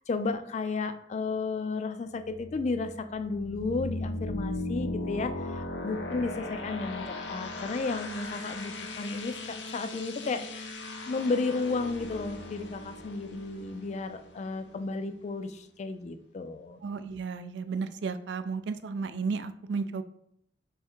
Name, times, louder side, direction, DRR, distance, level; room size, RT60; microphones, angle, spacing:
voice 1, 0.0-10.7 11.1-16.8, left 3 dB, 40° left, 9 dB, 0.3 m, -33 dB
sound 1, 2.2-14.9, left 2 dB, 85° left, 0.6 m, -38 dB
voice 2, 16.8-20.0, right 5 dB, 75° right, 10 dB, 0.4 m, -33 dB
3.5 x 3.3 x 4.4 m, 0.73 s
head